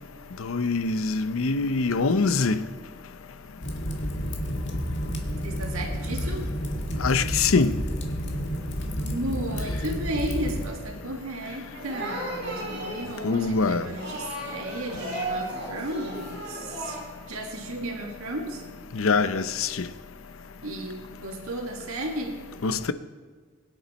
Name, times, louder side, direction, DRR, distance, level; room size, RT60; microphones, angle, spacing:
voice 1, 0.4-2.6 7.0-7.8 13.2-13.9 18.9-19.9 22.6-22.9, left 4 dB, 75° left, 0.6 m, -24 dB
Fire, 3.6-10.7, equal, 55° left, 1.8 m, -30 dB
voice 2, 5.4-6.5 8.8-17.0 17.3-18.7 20.6-22.4, right 1 dB, 90° right, 1.8 m, -34 dB
sound 1, 11.7-17.0, right 1 dB, 55° right, 5.4 m, -35 dB
21.5 x 10.0 x 4.3 m
head